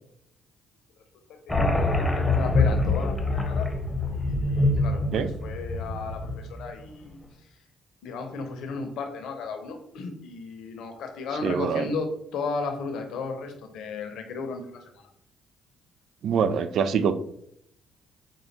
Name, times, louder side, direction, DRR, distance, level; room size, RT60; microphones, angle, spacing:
voice 1, 1.3-3.7 4.1-7.2 8.0-15.1, left 4 dB, 70° left, 5 dB, 0.7 m, -35 dB
sound 1, 1.5-6.7, left 2 dB, 15° left, 0.9 m, -25 dB
voice 2, 11.4-11.9 16.2-17.1, right 7 dB, 65° right, 11 dB, 0.3 m, -24 dB
5.2 x 2.2 x 3.2 m, 0.72 s
hypercardioid pair, 50°, 0 cm